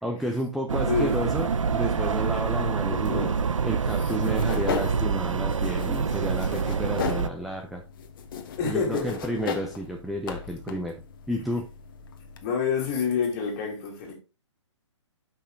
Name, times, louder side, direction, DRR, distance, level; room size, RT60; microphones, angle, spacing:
voice 1, 0.0-3.3 3.6-7.8 8.6-10.9 11.3-11.7, equal, ahead, 0.4 m, -31 dB
sound 1, 0.7-7.3, right 5 dB, 85° right, 0.8 m, -26 dB
voice 2, 2.9-3.4 8.6-9.2 12.4-14.1, left 6 dB, 30° left, 2.9 m, -28 dB
sound 2, 4.1-12.5, left 7 dB, 45° left, 1.2 m, -36 dB
8.2 x 5.7 x 3.6 m
hypercardioid pair, 150°, 16 cm